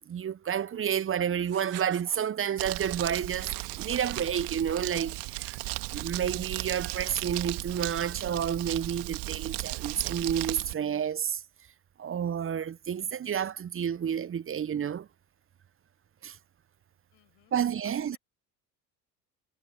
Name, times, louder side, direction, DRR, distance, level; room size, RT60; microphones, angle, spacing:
voice 1, 0.1-3.5 3.8-5.6 5.9-11.4 12.0-15.1 16.2-16.4 17.5-18.2, right 8 dB, 25° right, 1.1 m, -30 dB
Writing, 1.4-2.2 3.4-7.7, right 15 dB, 75° right, 2.7 m, -49 dB
Crumpling crinkling, 2.6-10.7, right 23 dB, 55° right, 2.2 m, -36 dB
voice 2, 17.1-18.2, left 21 dB, 60° left, 6.7 m, -61 dB
figure-of-eight pair, 65°, 48 cm